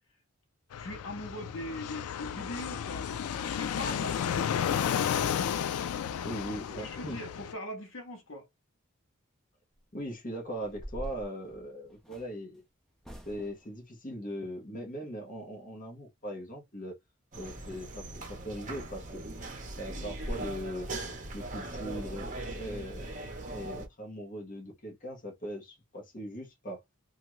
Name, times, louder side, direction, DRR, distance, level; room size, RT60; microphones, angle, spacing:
Fixed-wing aircraft airplane, 0.7-7.5, left 8 dB, 85° left, 0.3 m, -32 dB
voice 1, 0.8-5.1 6.8-8.5 20.0-20.1, left 1 dB, 65° left, 0.9 m, -41 dB
voice 2, 6.2-7.2 9.9-12.6 13.2-17.0 17.4-19.2 19.8-20.9 21.3-23.1 23.5-26.8, equal, 40° left, 0.9 m, -40 dB
sound 1, 9.7-10.0 10.5-12.3 13.0-13.7 18.2-18.3 18.8-18.9 19.3-19.4 19.7-19.8 20.1-20.5, equal, 5° left, 0.4 m, -43 dB
sound 2, 17.3-23.9, right 2 dB, 35° right, 0.8 m, -40 dB
2.9 x 2.4 x 3.0 m
head